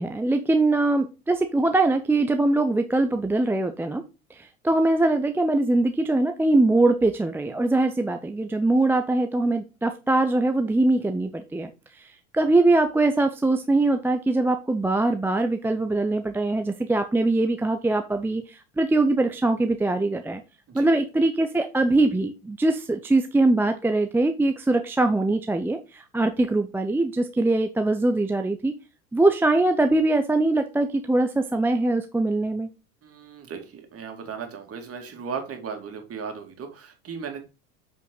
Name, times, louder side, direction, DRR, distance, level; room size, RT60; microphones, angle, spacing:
voice 1, 0.0-4.0 4.3-11.7 12.0-20.4 20.7-28.7 29.1-32.7, right 2 dB, 5° right, 6 dB, 0.5 m, -22 dB
voice 2, 33.0-37.4, right 6 dB, 30° right, 5 dB, 2.6 m, -36 dB
7.7 x 5.3 x 3.9 m, 0.29 s
hypercardioid pair, 85°, 43 cm